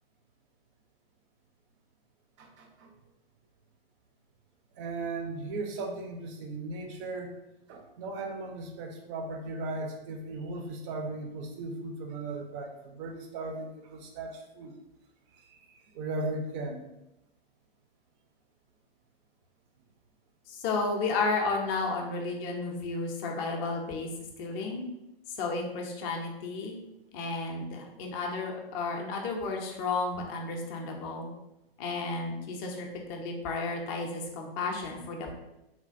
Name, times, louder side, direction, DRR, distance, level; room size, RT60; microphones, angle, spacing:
voice 1, 2.4-2.9 4.7-7.4 7.7-14.8 15.3-16.9, right 2 dB, 30° right, 3 dB, 0.4 m, -37 dB
voice 2, 20.5-24.1 24.4-24.9 25.3-26.8 27.1-31.3 31.8-35.3, left 3 dB, 25° left, 1 dB, 0.4 m, -32 dB
3.2 x 2.2 x 2.5 m, 0.92 s
hypercardioid pair, 120°, 30 cm